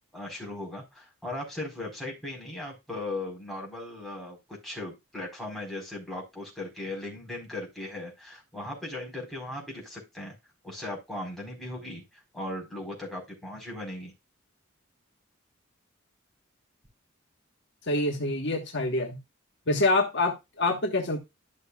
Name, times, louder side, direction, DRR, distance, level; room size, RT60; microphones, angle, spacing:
voice 1, 0.1-10.3 10.6-14.1, left 2 dB, ahead, -2 dB, 4.3 m, -38 dB
voice 2, 17.9-19.2 19.7-21.2, left 2 dB, 60° left, 3 dB, 1.3 m, -26 dB
12.0 x 6.5 x 2.4 m, 0.22 s
head